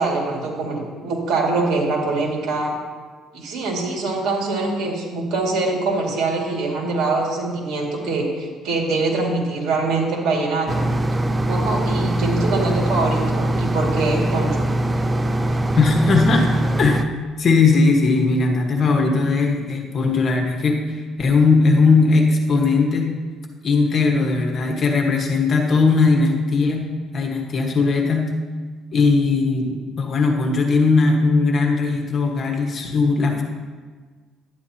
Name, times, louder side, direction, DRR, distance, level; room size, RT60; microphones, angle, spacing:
voice 1, 0.0-2.7 3.3-10.8 11.5-14.6, right 3 dB, 70° right, -1 dB, 2.2 m, -23 dB
sound 1, 10.7-17.0, right 1 dB, 20° right, 0.5 m, -22 dB
voice 2, 15.8-16.5 16.8-17.0 17.4-23.1 23.6-26.9 27.1-28.3 28.9-33.4, left 4 dB, 45° left, 2 dB, 1.4 m, -18 dB
11.5 x 9.4 x 2.9 m, 1.5 s
cardioid pair, 105°, 0 cm